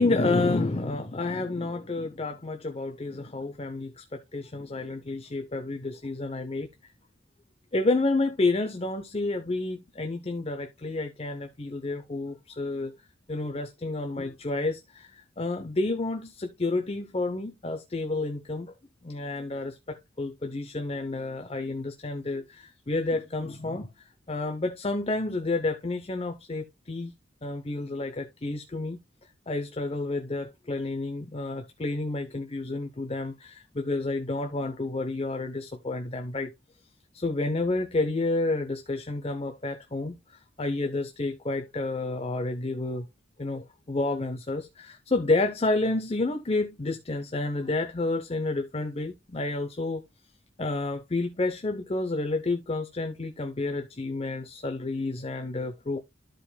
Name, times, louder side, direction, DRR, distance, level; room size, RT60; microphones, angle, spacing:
voice 1, 0.0-6.7 7.7-12.9 13.3-18.7 19.0-27.1 27.4-29.0 29.5-36.5 37.1-43.1 43.4-50.0 50.6-56.0, left 2 dB, 30° left, 0.8 m, -30 dB
13.0 x 5.1 x 2.3 m
head